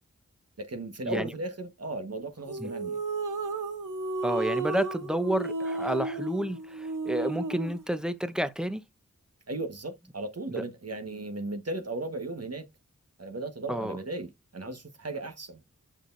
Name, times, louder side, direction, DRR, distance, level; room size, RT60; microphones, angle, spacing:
voice 1, 0.6-3.0 9.5-12.7 13.2-15.6, right 2 dB, 55° right, 1.6 m, -36 dB
sound 1, 2.5-7.8, right 3 dB, 85° right, 1.2 m, -33 dB
voice 2, 4.2-8.8 10.5-10.6 13.7-14.0, equal, ahead, 1.0 m, -30 dB
6.5 x 6.1 x 2.6 m
cardioid pair, 50°, 30 cm